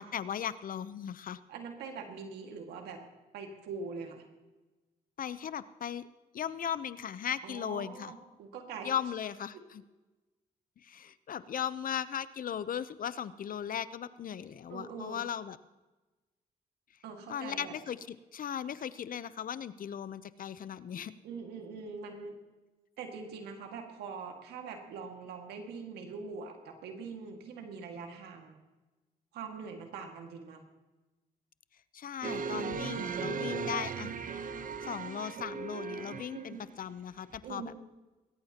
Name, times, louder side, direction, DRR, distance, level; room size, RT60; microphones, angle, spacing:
voice 1, 0.0-1.4 5.2-6.0 6.3-8.1 8.8-9.8 10.8-15.6 17.3-21.1 31.9-34.1 34.8-37.7, left 9 dB, 60° left, 15 dB, 0.7 m, -37 dB
voice 2, 1.5-3.0 3.3-4.2 7.4-8.9 14.7-15.2 17.0-17.7 21.2-22.4 23.0-28.6 29.3-30.6 36.3-36.6 37.4-37.8, right 5 dB, 90° right, 3 dB, 2.0 m, -43 dB
sound 1, 32.2-36.5 37.3-37.4, right 5 dB, 55° right, 1.0 m, -37 dB
20.5 x 18.0 x 2.9 m, 1.2 s
supercardioid pair, 55°, 16 cm